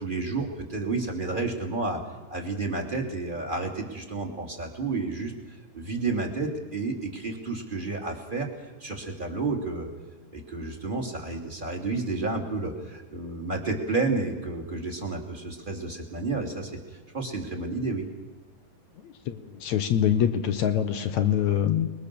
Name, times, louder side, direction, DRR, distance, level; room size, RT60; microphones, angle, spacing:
voice 1, 0.0-2.0 2.3-8.5 8.8-9.9 10.3-18.0, right 3 dB, 15° right, 2 dB, 2.6 m, -31 dB
voice 2, 19.0-21.9, left 9 dB, 70° left, 9 dB, 2.0 m, -25 dB
29.5 x 21.5 x 6.9 m, 1.2 s
omnidirectional pair, 4.0 m